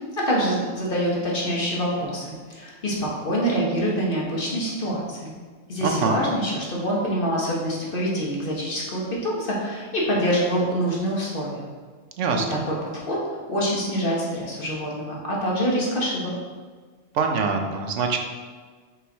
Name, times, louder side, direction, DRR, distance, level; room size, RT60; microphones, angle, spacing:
voice 1, 0.1-5.3 5.7-11.7 12.5-13.2 13.5-16.3, equal, 50° left, -4 dB, 1.5 m, -25 dB
voice 2, 5.8-6.2 12.2-12.6 17.1-18.2, right 5 dB, 85° right, 4 dB, 1.1 m, -24 dB
5.4 x 4.7 x 4.0 m, 1.5 s
omnidirectional pair, 1.2 m